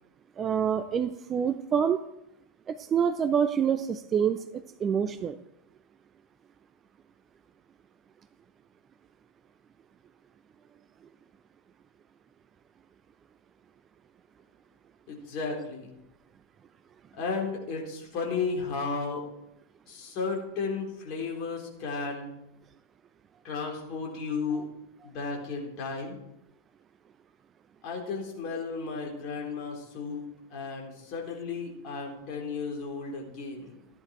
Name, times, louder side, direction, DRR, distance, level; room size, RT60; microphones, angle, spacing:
voice 1, 0.4-2.0 2.7-4.4 4.8-5.4, right 7 dB, 25° right, 12 dB, 0.5 m, -26 dB
voice 2, 15.1-15.9 17.1-19.2 19.9-22.3 23.4-24.7 25.0-26.2 27.8-30.2 30.5-33.7, left 4 dB, 40° left, -1 dB, 3.9 m, -34 dB
14.5 x 10.5 x 4.5 m, 0.84 s
figure-of-eight pair, 90°, 0 cm